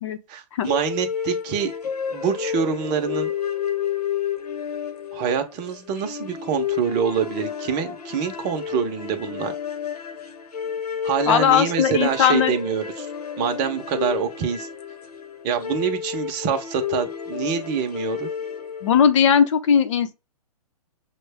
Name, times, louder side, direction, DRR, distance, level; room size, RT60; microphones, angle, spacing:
voice 1, 0.3-1.7 2.1-3.3 5.1-9.5 11.0-13.1 13.4-14.7 15.4-18.3, right 7 dB, 30° right, 0.8 m, -25 dB
sound 1, 0.6-19.1, left 8 dB, 80° left, 1.0 m, -31 dB
voice 2, 11.2-12.6 18.8-20.1, left 8 dB, 50° left, 0.7 m, -18 dB
6.1 x 2.3 x 3.4 m
hypercardioid pair, 135°, 20 cm